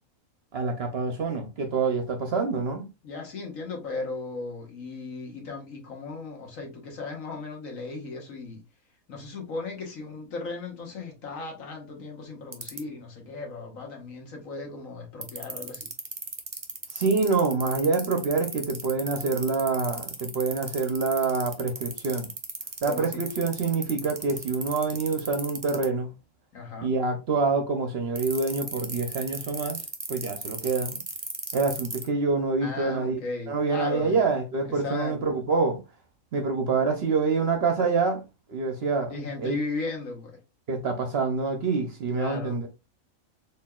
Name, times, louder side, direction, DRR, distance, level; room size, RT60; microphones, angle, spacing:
voice 1, 0.5-2.9 16.9-22.3 22.8-26.1 26.8-29.8 30.1-31.0 31.5-33.2 33.5-35.8 36.3-38.2 38.5-39.1 39.4-39.5 40.7-42.7, right 4 dB, 55° right, 0.7 m, -26 dB
voice 2, 3.0-8.6 9.1-15.9 22.8-23.3 26.5-26.9 32.6-34.2 34.6-35.2 39.1-40.4 42.1-42.6, left 3 dB, 70° left, 1.6 m, -36 dB
sound 1, 12.5-12.8 15.2-25.8 28.1-32.1, right 3 dB, 30° right, 0.3 m, -34 dB
4.4 x 3.4 x 2.3 m
omnidirectional pair, 1.5 m